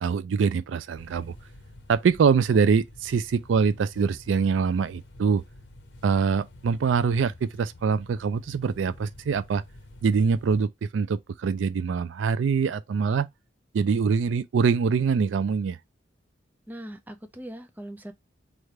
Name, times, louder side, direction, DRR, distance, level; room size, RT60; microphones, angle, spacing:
voice 1, 0.0-1.3 1.9-5.4 6.0-9.6 10.0-13.3 13.7-15.8, right 5 dB, 85° right, 0.4 m, -24 dB
sound 1, 1.0-10.7, left 1 dB, 70° left, 0.9 m, -49 dB
voice 2, 16.7-18.1, right 1 dB, 10° right, 0.5 m, -40 dB
3.3 x 2.5 x 4.3 m
head